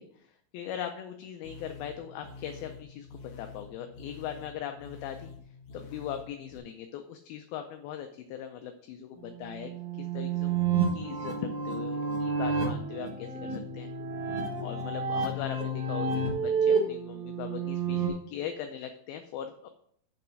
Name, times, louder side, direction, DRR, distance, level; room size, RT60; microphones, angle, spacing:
voice 1, 0.0-5.3 5.7-9.7 10.0-13.9 14.6-19.7, left 9 dB, 80° left, 6 dB, 2.3 m, -40 dB
sound 1, 1.4-6.6, left 5 dB, 65° left, 2.2 m, -47 dB
sound 2, 9.2-18.1, right 4 dB, 55° right, 1.1 m, -30 dB
7.1 x 5.9 x 6.1 m, 0.65 s
omnidirectional pair, 4.7 m